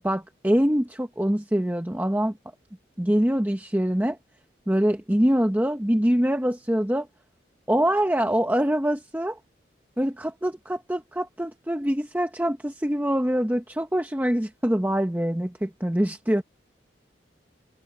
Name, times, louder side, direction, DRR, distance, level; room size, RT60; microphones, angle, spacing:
voice 1, 0.0-2.3 3.0-4.2 4.7-7.1 7.7-9.4 10.0-16.4, equal, 10° right, 0.8 m, -24 dB
head